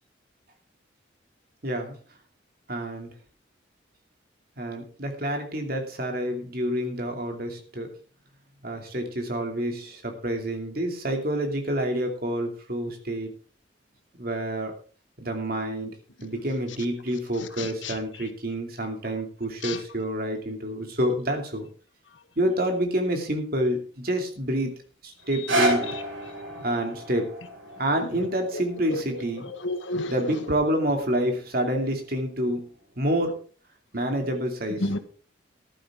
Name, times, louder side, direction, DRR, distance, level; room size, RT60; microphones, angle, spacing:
voice 1, 1.6-2.0 2.7-3.1 4.6-7.9 8.6-13.3 14.2-14.7 15.2-15.9 16.2-21.7 22.4-24.8 25.0-25.9 26.6-27.3 27.8-29.5 30.1-32.7 33.0-33.3 33.9-34.9, right 1 dB, 50° right, 2.6 m, -28 dB
voice 2, 17.6-17.9 19.6-19.8 28.9-29.0 29.6-30.1 34.8-35.0, left 2 dB, 75° left, 1.5 m, -29 dB
sound 1, 25.2-31.3 32.0-32.1, right 1 dB, 90° right, 5.9 m, -32 dB
14.5 x 11.5 x 3.6 m
head